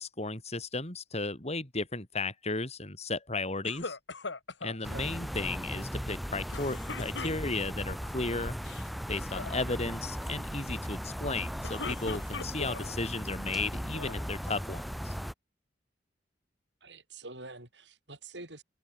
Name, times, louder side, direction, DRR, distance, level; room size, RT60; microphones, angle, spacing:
voice 1, 0.0-4.0 4.6-8.6 9.1-15.1, left 3 dB, 35° left, 5.0 m, -34 dB
sound 1, 3.6-4.8 6.5-7.8 8.5-8.9 9.2-9.6 11.4-12.9 13.5-14.3, left 4 dB, 85° left, 2.0 m, -40 dB
sound 2, 4.8-15.3, equal, ahead, 3.2 m, -37 dB
voice 2, 16.8-18.6, right 2 dB, 70° right, 8.0 m, -46 dB
open air
head